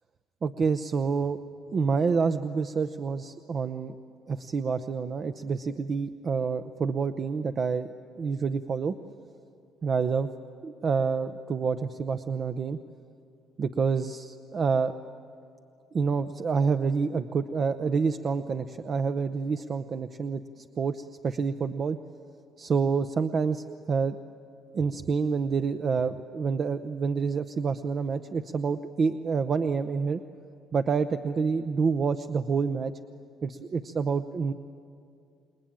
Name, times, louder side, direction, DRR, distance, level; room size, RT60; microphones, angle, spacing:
voice 1, 0.4-1.4 1.7-3.9 4.3-7.9 8.2-8.9 9.8-10.3 10.6-12.8 13.6-14.9 15.9-22.0 22.6-24.2 24.7-30.2 30.7-32.9 33.4-34.5, right 5 dB, 45° right, 9 dB, 0.7 m, -28 dB
28.0 x 21.0 x 9.0 m, 2.4 s
cardioid pair, 90°, 0 cm